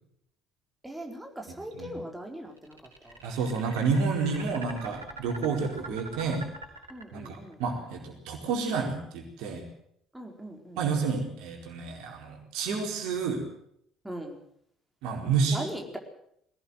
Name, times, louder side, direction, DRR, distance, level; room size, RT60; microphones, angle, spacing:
voice 1, 0.8-2.8 3.0-3.2 6.9-7.6 10.1-10.8 14.0-14.4 15.5-16.0, right 1 dB, 5° right, 2 dB, 4.6 m, -39 dB
sound 1, 2.6-7.6, right 2 dB, 85° right, 4.1 m, -44 dB
voice 2, 3.2-6.5 7.1-9.6 10.8-13.5 15.0-15.7, right 5 dB, 60° right, 2 dB, 4.4 m, -30 dB
21.0 x 18.0 x 7.8 m, 0.72 s
figure-of-eight pair, 55°, 0 cm